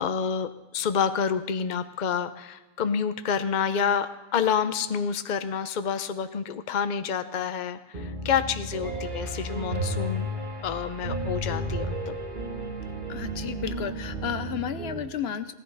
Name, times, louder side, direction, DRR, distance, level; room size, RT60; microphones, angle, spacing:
voice 1, 0.0-10.3 10.6-12.1, left 7 dB, 50° left, 11 dB, 0.8 m, -28 dB
Piano, 7.9-15.0, right 1 dB, 50° right, 2.3 m, -33 dB
voice 2, 13.1-15.5, left 8 dB, 75° left, 11 dB, 0.9 m, -32 dB
17.5 x 14.0 x 3.9 m, 1.0 s
omnidirectional pair, 1.1 m